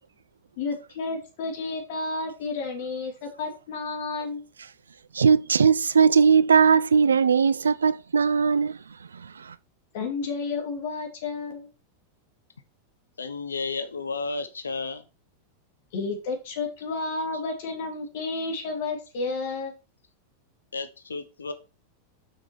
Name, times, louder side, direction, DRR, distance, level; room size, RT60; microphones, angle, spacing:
voice 1, 0.6-4.4 9.9-11.7 15.9-19.7, left 3 dB, 50° left, 2.8 m, -31 dB
voice 2, 5.1-9.6, right 6 dB, 70° right, 0.4 m, -20 dB
voice 3, 13.2-15.0 20.7-21.5, left 4 dB, 75° left, 1.0 m, -32 dB
6.4 x 6.3 x 4.5 m
figure-of-eight pair, 90°, 0 cm